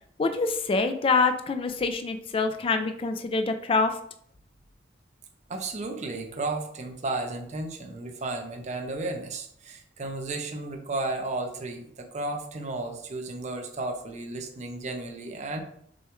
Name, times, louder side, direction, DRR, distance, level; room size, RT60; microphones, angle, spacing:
voice 1, 0.2-3.9, left 4 dB, 30° left, 8 dB, 0.3 m, -25 dB
voice 2, 5.5-15.6, right 2 dB, 40° right, 4 dB, 0.6 m, -33 dB
6.2 x 2.3 x 3.0 m, 0.65 s
head